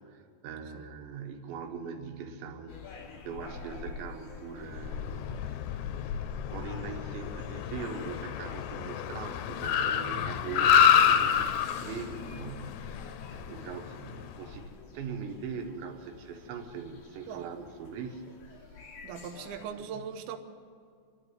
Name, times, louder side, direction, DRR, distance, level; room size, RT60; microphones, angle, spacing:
voice 1, 0.0-5.5 6.5-13.1 13.3-18.4 18.7-18.8 19.7-20.1, right 6 dB, 90° right, 4 dB, 3.8 m, -41 dB
sound 1, 2.7-19.6, left 4 dB, 50° left, 3.8 m, -46 dB
Car, 4.8-14.3, left 8 dB, 90° left, 3.0 m, -28 dB
voice 2, 19.0-20.4, right 7 dB, 70° right, 5 dB, 2.8 m, -40 dB
26.5 x 11.0 x 9.5 m, 2.2 s
omnidirectional pair, 5.0 m